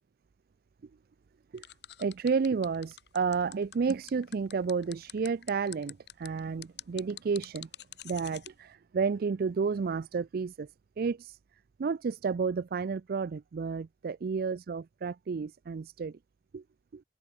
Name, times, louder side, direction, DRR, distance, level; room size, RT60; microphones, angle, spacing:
sound 1, 1.6-8.5, left 13 dB, 70° left, 1.4 m, -46 dB
voice 1, 2.0-7.7 8.0-10.7 11.0-11.4 11.8-16.2 16.5-16.6 16.9-17.0, right 5 dB, 55° right, 0.4 m, -31 dB
head